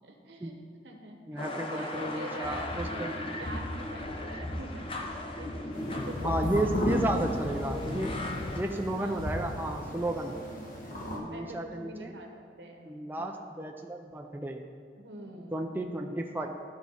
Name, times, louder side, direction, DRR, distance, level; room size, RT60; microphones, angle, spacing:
voice 1, 0.0-0.6 0.8-6.3 6.6-7.1 8.0-8.3 8.6-9.2 10.1-10.3 11.3-13.4 15.0-15.5, right 1 dB, 90° right, 2 dB, 1.1 m, -46 dB
voice 2, 1.3-3.1 6.2-8.2 8.6-10.3 11.1-12.1 12.9-14.6 15.5-16.5, right 1 dB, 10° right, 3 dB, 0.4 m, -33 dB
sound 1, 1.4-8.6, left 1 dB, 30° left, 0.6 m, -36 dB
sound 2, 5.7-11.2, equal, 50° left, 1.3 m, -36 dB
12.0 x 4.6 x 4.0 m, 2.3 s
head